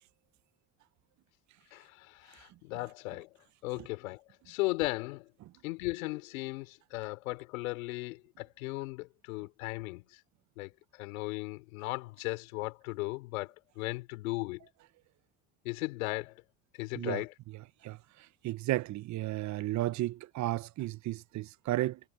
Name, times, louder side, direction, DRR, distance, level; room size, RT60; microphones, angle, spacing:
voice 1, 1.7-3.4 3.6-5.3 5.6-10.2 10.6-14.7 15.6-16.4 16.8-17.3, left 22 dB, 85° left, 4.3 m, -37 dB
voice 2, 18.4-22.0, right 16 dB, 45° right, 0.7 m, -33 dB
supercardioid pair, 95°, 40 cm